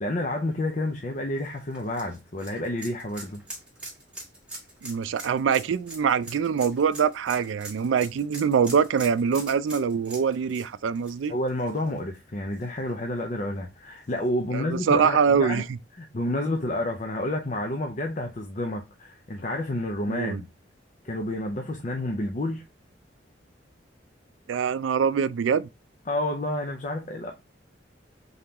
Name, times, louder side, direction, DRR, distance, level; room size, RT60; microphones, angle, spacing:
voice 1, 0.0-3.4 11.3-15.6 16.0-20.5 21.0-22.6 26.1-27.3, left 1 dB, 40° left, 0.6 m, -30 dB
sound 1, 1.4-12.2 12.5-12.6 14.1-14.2, right 2 dB, 5° right, 1.7 m, -42 dB
voice 2, 4.8-11.3 14.5-15.6 20.1-20.4 24.5-25.7, right 6 dB, 85° right, 0.4 m, -24 dB
3.9 x 3.6 x 2.9 m
head